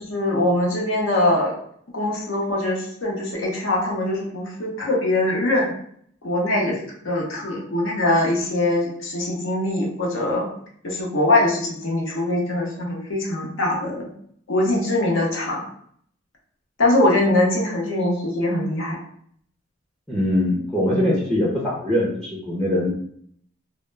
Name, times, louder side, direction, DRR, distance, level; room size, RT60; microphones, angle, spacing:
voice 1, 0.0-1.5 1.9-5.7 6.2-10.5 10.8-14.1 14.5-15.6 16.8-19.0, left 1 dB, 80° left, -2 dB, 0.7 m, -22 dB
voice 2, 20.1-22.9, left 1 dB, 5° left, -5 dB, 0.4 m, -22 dB
2.1 x 2.0 x 3.2 m, 0.64 s
head